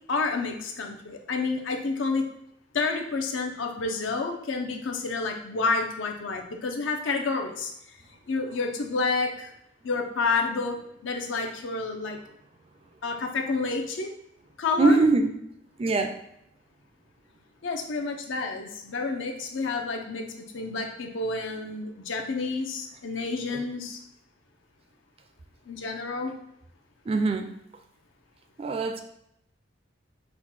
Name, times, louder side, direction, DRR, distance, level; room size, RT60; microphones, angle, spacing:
voice 1, 0.1-2.3 2.7-7.7 8.3-9.5 9.8-10.8 11.0-12.2 13.0-14.1 14.6-15.0 17.6-20.2 20.5-24.0 25.7-26.3, left 3 dB, 80° left, 3 dB, 0.6 m, -29 dB
voice 2, 14.8-15.3 15.8-16.1 23.5-23.6 27.1-27.5 28.6-29.0, right 3 dB, 30° right, 6 dB, 0.3 m, -22 dB
4.3 x 2.2 x 4.1 m, 0.75 s
head